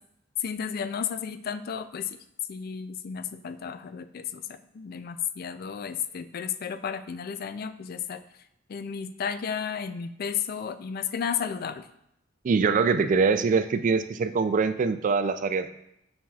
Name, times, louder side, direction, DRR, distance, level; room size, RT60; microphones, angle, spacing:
voice 1, 0.4-2.2 2.5-8.2 8.7-11.9, left 7 dB, 50° left, 11 dB, 0.4 m, -33 dB
voice 2, 12.4-15.7, right 4 dB, 45° right, 11 dB, 0.3 m, -23 dB
7.2 x 6.2 x 2.4 m, 0.79 s
head